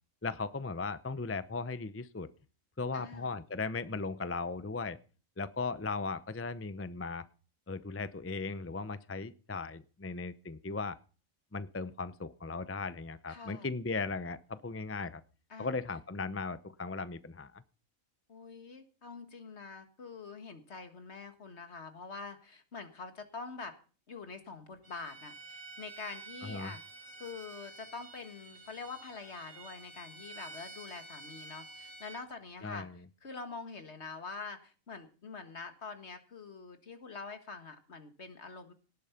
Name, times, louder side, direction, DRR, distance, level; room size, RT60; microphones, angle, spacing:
voice 1, 0.2-2.3 2.8-5.0 5.4-7.3 7.7-11.0 11.5-15.2 15.6-17.6 26.4-26.7 32.6-32.9, left 4 dB, 15° left, 13 dB, 0.4 m, -37 dB
voice 2, 2.9-3.3 13.3-13.7 15.5-15.7 18.3-23.8 24.1-26.8 27.2-32.9 33.2-38.7, left 4 dB, 55° left, 8 dB, 2.0 m, -45 dB
Bowed string instrument, 24.8-32.2, right 3 dB, 65° right, 5.7 m, -50 dB
18.0 x 8.7 x 5.8 m, 0.37 s
omnidirectional pair, 1.4 m